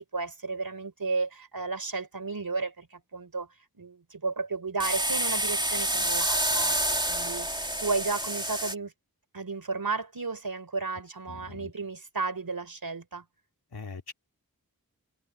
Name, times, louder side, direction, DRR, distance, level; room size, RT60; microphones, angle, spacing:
voice 1, 0.0-3.5 3.7-8.9 9.3-13.2, right 4 dB, 70° right, 3.8 m, -33 dB
sound 1, 4.8-8.7, right 1 dB, 10° right, 3.1 m, -28 dB
voice 2, 11.3-11.7 13.7-14.1, left 4 dB, 90° left, 3.0 m, -41 dB
wide cardioid pair, 40°, 37 cm